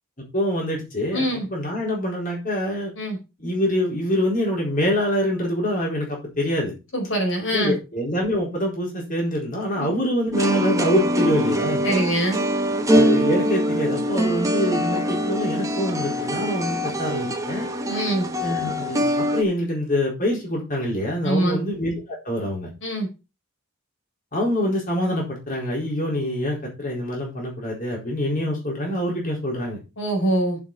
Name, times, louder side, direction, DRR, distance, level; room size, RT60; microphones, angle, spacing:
voice 1, 0.3-2.9 3.4-6.7 7.5-11.8 12.9-17.7 18.4-22.7 24.3-29.8, left 1 dB, 40° left, -2 dB, 4.3 m, -25 dB
voice 2, 1.1-1.5 3.0-3.2 6.9-7.8 9.8-9.9 11.8-12.5 17.9-18.3 21.2-21.6 22.8-23.1 30.0-30.6, right 1 dB, 60° left, 1 dB, 4.5 m, -23 dB
sound 1, 10.3-19.4, equal, 15° right, 1.1 m, -23 dB
7.8 x 7.0 x 5.5 m, 0.27 s
head